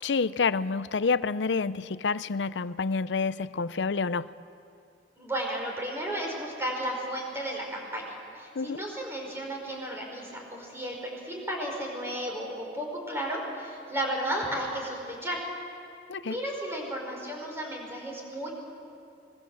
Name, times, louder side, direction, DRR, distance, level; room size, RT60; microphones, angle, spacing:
voice 1, 0.0-4.3 8.5-8.8 16.1-16.4, left 4 dB, 85° left, 16 dB, 0.6 m, -28 dB
voice 2, 5.2-15.4 16.2-18.5, right 1 dB, 15° right, 0 dB, 5.2 m, -34 dB
24.5 x 21.0 x 7.7 m, 2.5 s
head